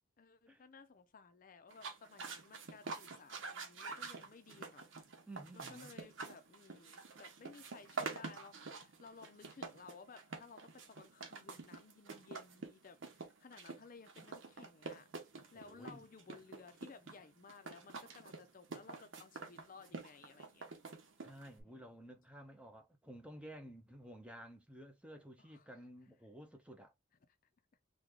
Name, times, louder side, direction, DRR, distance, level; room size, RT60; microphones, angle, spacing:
voice 1, 0.2-4.9 5.5-15.1 15.5-20.7 21.6-21.9 25.4-25.8, left 4 dB, 45° left, 0.5 m, -58 dB
sound 1, 1.7-21.6, right 4 dB, 80° right, 0.8 m, -48 dB
voice 2, 5.3-5.9 15.5-16.0 21.2-26.9, right 1 dB, 5° right, 0.6 m, -53 dB
3.7 x 2.3 x 3.1 m
head